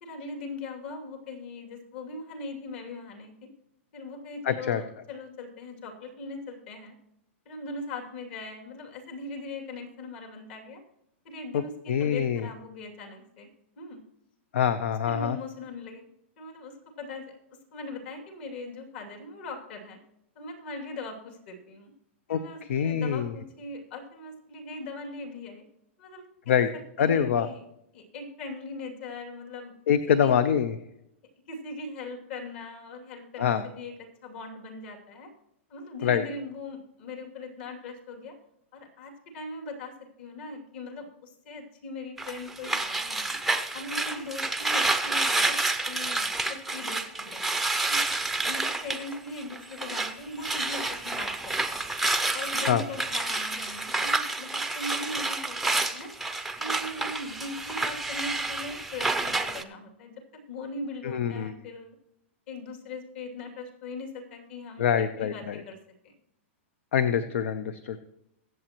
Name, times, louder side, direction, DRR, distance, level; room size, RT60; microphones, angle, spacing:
voice 1, 0.0-3.5 3.9-6.9 7.4-10.8 11.2-13.5 13.8-14.0 15.1-16.0 16.4-17.3 17.7-20.0 20.3-21.9 22.3-25.6 26.0-26.7 27.0-27.6 27.9-29.8 30.1-30.4 31.5-35.3 35.7-38.3 38.7-39.9 40.2-43.3 43.7-47.4 47.9-48.0 48.4-51.9 52.3-56.1 56.6-62.0 62.5-65.8 66.0-66.1, left 2 dB, 55° left, 2 dB, 2.7 m, -40 dB
voice 2, 4.4-4.8 11.5-11.6 11.9-12.5 14.5-15.4 22.3-22.4 22.7-23.3 26.5-26.7 27.0-27.5 29.9-30.7 33.4-33.6 36.0-36.2 52.7-52.8 61.0-61.5 64.8-65.6 66.9-68.0, left 8 dB, 70° left, 12 dB, 0.7 m, -25 dB
sound 1, 42.2-50.1 50.4-59.6, right 2 dB, ahead, 0.6 m, -29 dB
23.0 x 7.7 x 3.0 m, 0.80 s
hypercardioid pair, 155°, 7 cm